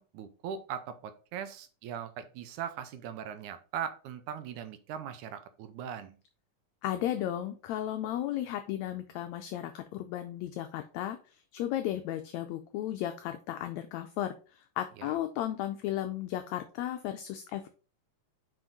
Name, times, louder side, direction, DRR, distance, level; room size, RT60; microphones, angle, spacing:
voice 1, 0.0-6.1 15.0-15.2, right 8 dB, 80° right, 10 dB, 2.2 m, -40 dB
voice 2, 6.8-11.2 11.5-14.4 14.8-17.7, left 12 dB, 80° left, 7 dB, 1.7 m, -34 dB
6.1 x 5.0 x 3.9 m, 0.36 s
omnidirectional pair, 3.6 m